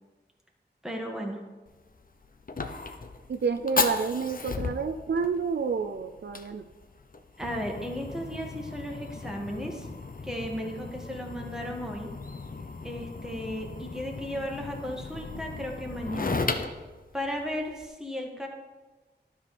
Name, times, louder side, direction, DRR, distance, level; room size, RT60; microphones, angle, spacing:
voice 1, 0.8-1.4 7.4-9.9 10.2-12.1 12.8-16.5 17.1-18.5, equal, 5° right, 0 dB, 1.6 m, -35 dB
Fire, 1.7-17.9, left 3 dB, 50° left, 0.7 m, -36 dB
voice 2, 3.3-6.7, right 5 dB, 70° right, 7 dB, 0.4 m, -29 dB
11.5 x 5.1 x 4.2 m, 1.2 s
wide cardioid pair, 45°, 18 cm